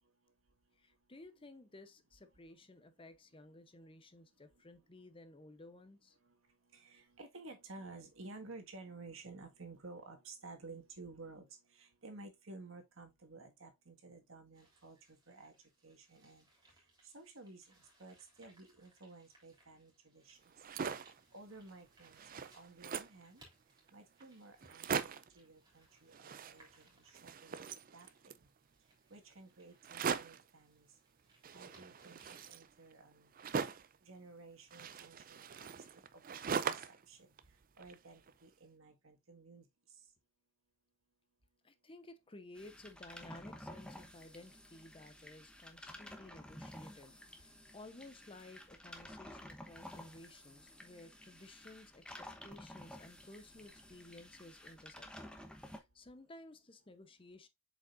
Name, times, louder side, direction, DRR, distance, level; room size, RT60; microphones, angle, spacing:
voice 1, 0.8-6.2 41.6-55.1 55.7-57.5, left 2 dB, 25° left, 0.8 m, -56 dB
voice 2, 6.7-11.5 11.7-15.5 15.8-16.4 17.1-17.6 18.0-20.4 21.3-23.4 23.9-28.1 29.1-30.9 31.5-33.3 34.0-35.7 36.1-36.8 37.1-37.2 37.8-39.7, right 3 dB, 70° right, 1.8 m, -54 dB
sound 1, 14.5-32.6, right 1 dB, 20° right, 3.5 m, -69 dB
sound 2, 20.5-21.2 21.7-21.8 22.0-23.2 23.9-24.0 24.2-24.3 24.6-25.4 26.1-26.9 27.1-28.4 29.8-30.5 31.4-34.0 34.7-37.0 37.4-38.3, right 6 dB, 45° right, 0.5 m, -41 dB
sound 3, 42.5-55.8, left 1 dB, 5° left, 1.0 m, -52 dB
7.6 x 5.1 x 2.5 m
head